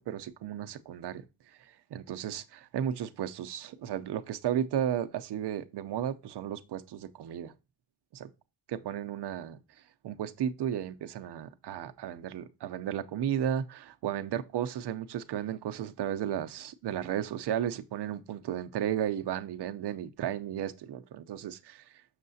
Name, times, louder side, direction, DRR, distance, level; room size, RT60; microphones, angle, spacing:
voice 1, 0.1-1.2 1.6-7.5 8.1-8.3 8.7-9.6 10.0-21.8, right 10 dB, 60° right, 0.6 m, -34 dB
6.6 x 6.4 x 2.7 m
wide cardioid pair, 135°, 46 cm